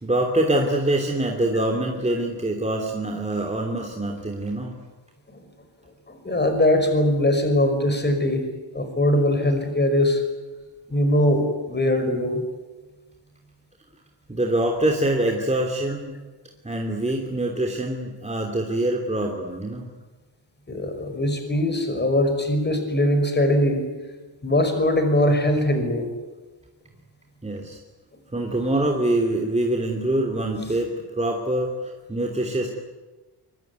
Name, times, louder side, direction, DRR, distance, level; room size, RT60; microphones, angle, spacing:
voice 1, 0.0-4.8 14.3-16.1 16.6-19.9 27.4-27.8 28.3-32.7, right 1 dB, 15° right, 1 dB, 3.1 m, -24 dB
voice 2, 6.1-8.5 8.7-10.2 10.9-12.4 20.7-23.8 24.4-26.1, left 1 dB, 25° left, 7 dB, 5.6 m, -21 dB
24.5 x 23.0 x 9.6 m, 1.2 s
wide cardioid pair, 120°, 43 cm